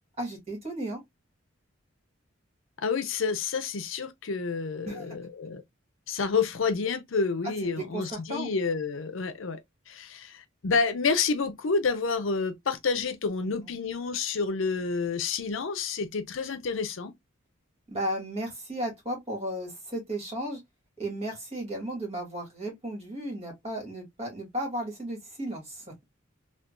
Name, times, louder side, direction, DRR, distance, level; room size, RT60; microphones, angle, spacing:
voice 1, 0.2-1.0 4.9-5.1 7.6-8.5 13.4-13.5 17.9-20.6 21.0-25.9, right 1 dB, 35° right, 1.8 m, -34 dB
voice 2, 2.8-5.6 6.1-9.6 9.9-17.1, left 4 dB, 80° left, 0.6 m, -29 dB
3.7 x 2.4 x 2.3 m
head